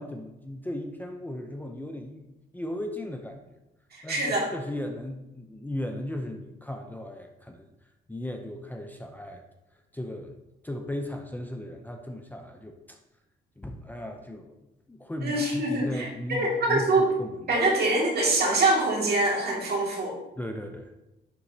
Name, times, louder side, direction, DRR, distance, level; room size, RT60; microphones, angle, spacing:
voice 1, 0.0-2.3 2.5-3.6 4.0-7.7 8.1-9.4 9.9-10.4 10.6-13.0 13.6-14.6 14.9-17.5 20.4-20.9, left 1 dB, 10° left, 3 dB, 0.5 m, -36 dB
voice 2, 3.9-4.5 15.2-17.1 17.5-20.2, right 2 dB, 55° right, -2 dB, 2.2 m, -24 dB
10.5 x 4.0 x 2.8 m, 0.95 s
cardioid pair, 90°, 20 cm